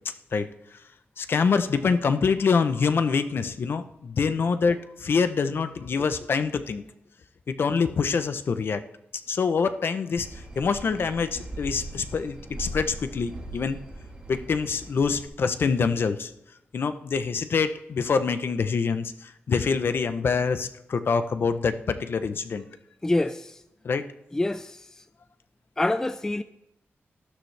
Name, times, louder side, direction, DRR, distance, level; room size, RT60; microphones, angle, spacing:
voice 1, 1.2-6.8 7.5-8.8 9.3-13.8 14.3-16.3 16.7-22.7 23.8-24.0, left 5 dB, 55° left, 0.7 m, -25 dB
sound 1, 10.2-15.3, right 1 dB, 20° right, 1.6 m, -40 dB
voice 2, 23.0-23.5 24.3-24.8 25.8-26.4, left 2 dB, 10° left, 0.4 m, -26 dB
13.0 x 13.0 x 3.4 m
wide cardioid pair, 175°, 4 cm